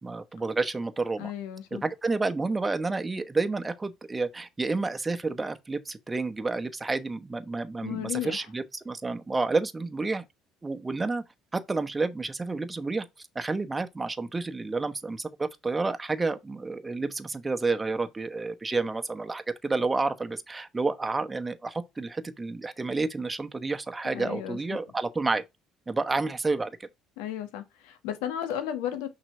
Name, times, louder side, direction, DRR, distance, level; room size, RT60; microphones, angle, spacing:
voice 1, 0.0-1.3 1.7-10.2 10.6-11.2 11.5-13.0 13.3-25.4 25.9-26.9, right 3 dB, 20° right, 1.0 m, -30 dB
voice 2, 1.2-1.8 7.8-8.5 24.0-24.8 27.2-29.1, left 10 dB, 75° left, 1.3 m, -34 dB
6.0 x 4.0 x 4.4 m
hypercardioid pair, 60°, 0 cm